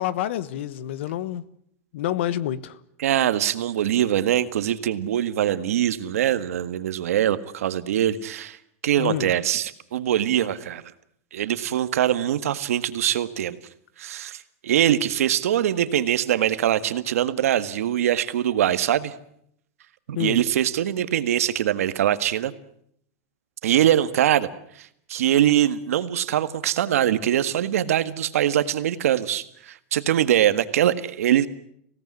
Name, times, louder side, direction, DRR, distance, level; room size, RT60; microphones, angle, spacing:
voice 1, 0.0-1.4 1.9-2.8 9.0-9.3 20.1-20.4, left 12 dB, 55° left, 18 dB, 1.3 m, -28 dB
voice 2, 3.0-8.6 8.8-10.8 11.3-13.6 14.0-19.1 20.1-22.5 23.6-24.5 24.8-31.5, right 11 dB, 90° right, 12 dB, 1.8 m, -23 dB
25.5 x 17.5 x 9.9 m, 0.71 s
supercardioid pair, 175°, 8 cm